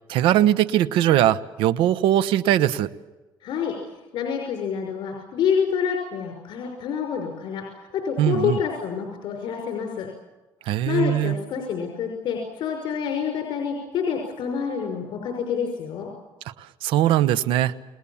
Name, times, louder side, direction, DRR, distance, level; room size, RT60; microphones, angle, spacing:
voice 1, 0.1-2.9 8.2-8.6 10.7-11.4 16.8-17.7, right 12 dB, 80° right, 15 dB, 1.1 m, -20 dB
voice 2, 3.4-3.8 4.1-10.1 10.9-16.1, left 7 dB, 65° left, 2 dB, 5.7 m, -27 dB
29.0 x 19.5 x 7.3 m, 1.2 s
cardioid pair, 125°, 9 cm